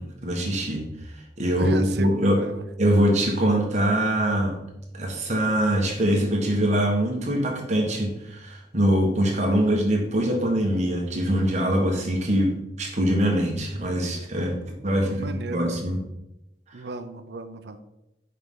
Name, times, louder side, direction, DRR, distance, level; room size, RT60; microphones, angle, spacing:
voice 1, 0.0-2.4 2.8-4.6 4.9-14.6 14.8-16.0, equal, 40° right, 1 dB, 1.4 m, -23 dB
voice 2, 1.6-2.6 14.9-15.7 16.7-17.8, right 2 dB, 70° right, 10 dB, 0.6 m, -34 dB
6.5 x 4.9 x 3.7 m, 0.89 s
head